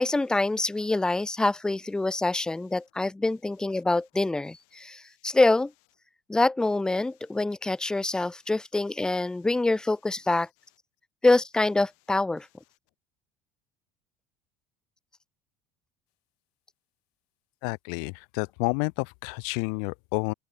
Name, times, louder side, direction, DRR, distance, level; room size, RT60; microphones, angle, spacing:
voice 1, 0.0-5.7 6.3-10.5 11.2-12.5, left 2 dB, 5° left, 0.7 m, -25 dB
voice 2, 17.6-20.3, left 40 dB or more, 85° left, 0.7 m, -30 dB
open air
cardioid pair, 140°, 11 cm